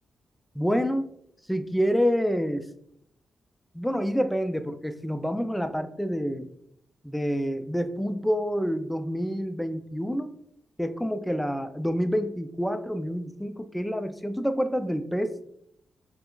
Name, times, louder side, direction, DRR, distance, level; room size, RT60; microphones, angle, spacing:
voice 1, 0.5-1.0 1.5-2.7 3.7-6.5 7.0-10.3 10.8-15.4, equal, 5° left, 9 dB, 0.4 m, -27 dB
5.5 x 2.0 x 2.4 m, 0.72 s
cardioid pair, 65°, 0 cm